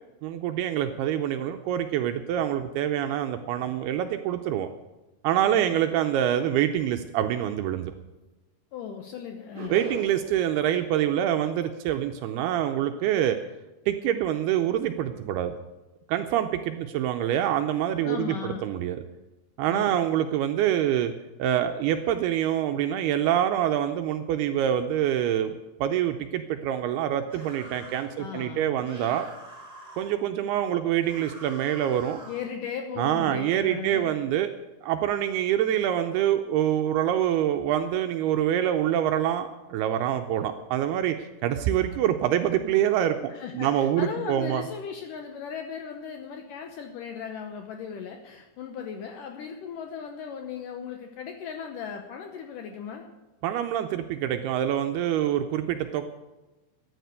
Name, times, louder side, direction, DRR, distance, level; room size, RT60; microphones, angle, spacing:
voice 1, 0.2-4.7 5.2-7.9 9.7-13.4 13.9-15.6 16.1-19.0 19.6-21.1 21.4-25.6 25.8-29.3 30.0-32.2 33.0-34.5 34.8-44.6 53.4-56.1, right 11 dB, 80° right, 6 dB, 2.3 m, -26 dB
voice 2, 5.4-5.9 8.7-9.8 18.0-18.6 19.7-20.0 28.2-28.9 32.3-34.1 43.3-53.1, left 7 dB, 85° left, 4 dB, 1.8 m, -37 dB
sound 1, 9.5-10.4, right 5 dB, 30° right, 3.1 m, -37 dB
sound 2, 27.3-28.1 28.8-30.1 31.0-32.5, right 1 dB, 10° right, 3.9 m, -46 dB
13.5 x 10.0 x 8.1 m, 1.1 s
omnidirectional pair, 5.2 m